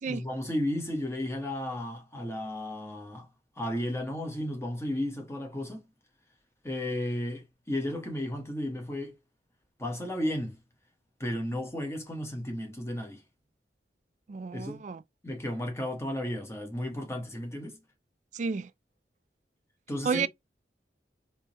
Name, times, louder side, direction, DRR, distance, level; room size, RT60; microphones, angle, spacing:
voice 1, 0.1-3.3 3.6-5.8 6.6-9.1 9.8-10.6 11.2-13.2 14.5-14.8 15.2-17.8 19.9-20.3, left 1 dB, 15° left, 1.0 m, -33 dB
voice 2, 14.3-15.0 18.3-18.7 20.0-20.3, right 5 dB, 45° right, 0.3 m, -31 dB
3.5 x 2.8 x 2.9 m
head